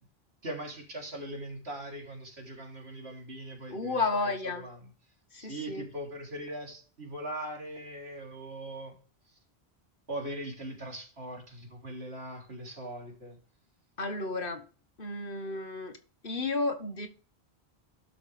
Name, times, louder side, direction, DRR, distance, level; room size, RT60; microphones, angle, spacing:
voice 1, 0.4-4.8 5.4-8.9 10.1-13.4, right 1 dB, 90° right, 0 dB, 3.8 m, -40 dB
voice 2, 3.7-4.6 5.3-5.8 14.0-14.7 15.0-16.0 16.2-17.1, left 3 dB, 60° left, 7 dB, 1.6 m, -32 dB
12.0 x 6.9 x 3.5 m, 0.37 s
omnidirectional pair, 1.0 m